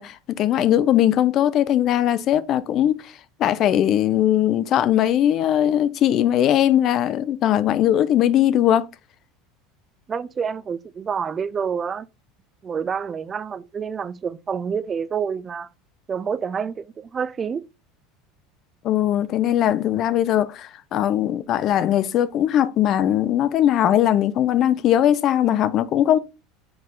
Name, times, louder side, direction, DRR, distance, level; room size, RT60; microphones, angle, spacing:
voice 1, 0.0-3.1 3.4-8.9 18.8-26.2, left 11 dB, 40° left, 0.5 m, -20 dB
voice 2, 10.1-12.1 12.6-15.7 16.1-17.7, right 6 dB, 25° right, 0.4 m, -28 dB
6.2 x 4.8 x 3.7 m
supercardioid pair, 140°, 0 cm